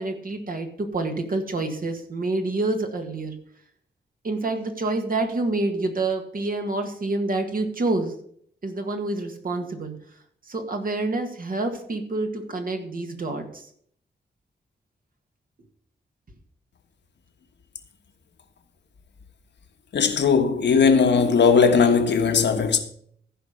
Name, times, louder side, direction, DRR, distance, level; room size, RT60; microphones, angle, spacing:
voice 1, 0.0-3.4 4.2-8.1 8.6-10.0 10.5-13.7, right 2 dB, 50° right, 1.8 m, -27 dB
voice 2, 19.9-22.8, left 5 dB, 75° left, 1.4 m, -18 dB
14.5 x 5.2 x 6.5 m
wide cardioid pair, 100°, 18 cm